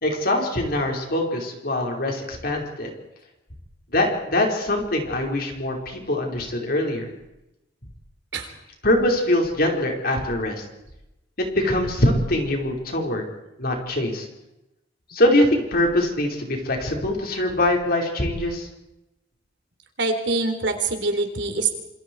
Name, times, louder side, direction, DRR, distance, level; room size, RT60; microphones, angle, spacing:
voice 1, 0.0-2.9 3.9-7.1 8.8-10.7 11.4-13.2 13.6-14.3 15.1-18.7, left 1 dB, 55° left, 1 dB, 5.2 m, -23 dB
voice 2, 20.0-21.7, right 3 dB, 70° right, 5 dB, 3.8 m, -24 dB
27.5 x 27.0 x 4.8 m, 0.92 s
head